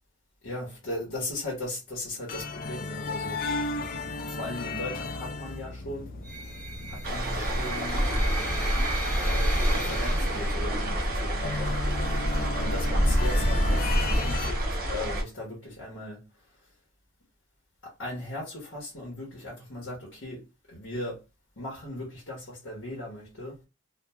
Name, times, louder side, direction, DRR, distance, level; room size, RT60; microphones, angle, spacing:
voice 1, 0.4-3.4 4.0-6.1 6.9-8.1 9.2-11.8 12.6-14.6 14.9-16.2 17.8-20.4 20.7-21.2 21.6-23.5, left 1 dB, 60° left, 1.0 m, -37 dB
sound 1, 2.3-14.5, left 3 dB, 40° left, 0.3 m, -36 dB
sound 2, 6.2-11.3, right 1 dB, 5° left, 0.7 m, -37 dB
sound 3, 7.0-15.2, equal, 45° right, 0.7 m, -27 dB
3.0 x 2.2 x 2.2 m
head